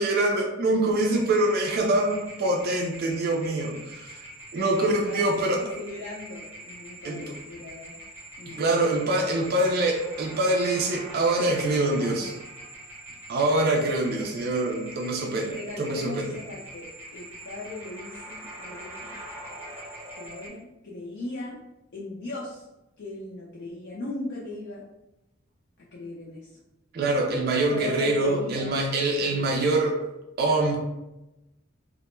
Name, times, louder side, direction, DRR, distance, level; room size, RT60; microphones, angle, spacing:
voice 1, 0.0-4.2 4.5-5.6 7.0-7.2 8.5-12.3 13.3-16.4 26.9-30.0 30.4-30.8, right 2 dB, 50° right, 1 dB, 0.4 m, -24 dB
sound 1, 0.9-20.5, right 1 dB, 10° right, 0.7 m, -43 dB
voice 2, 4.6-8.0 8.4-8.7 9.0-9.6 11.8-12.4 13.7-13.9 15.5-19.2 20.1-21.6 21.9-22.6 23.0-24.8 25.8-26.5 27.6-28.7 29.1-29.5, left 2 dB, 55° left, -6 dB, 0.4 m, -38 dB
2.2 x 2.0 x 3.0 m, 0.95 s
head